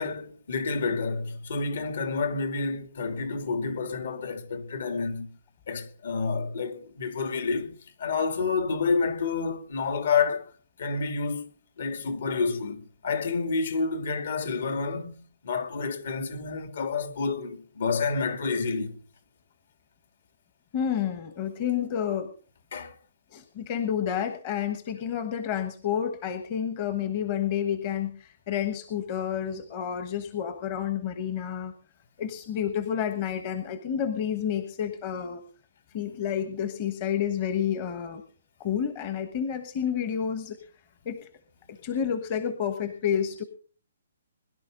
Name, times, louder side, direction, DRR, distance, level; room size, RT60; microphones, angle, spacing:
voice 1, 0.0-5.3 5.7-10.5 10.8-11.5 11.8-19.0 22.7-22.9, left 4 dB, 60° left, 2.9 m, -29 dB
voice 2, 20.7-22.3 23.3-31.7 32.2-35.4 35.9-38.2 38.6-40.6 41.0-41.2 41.7-43.4, left 8 dB, 25° left, 1.3 m, -30 dB
22.0 x 12.0 x 3.9 m
hypercardioid pair, 170°, 0 cm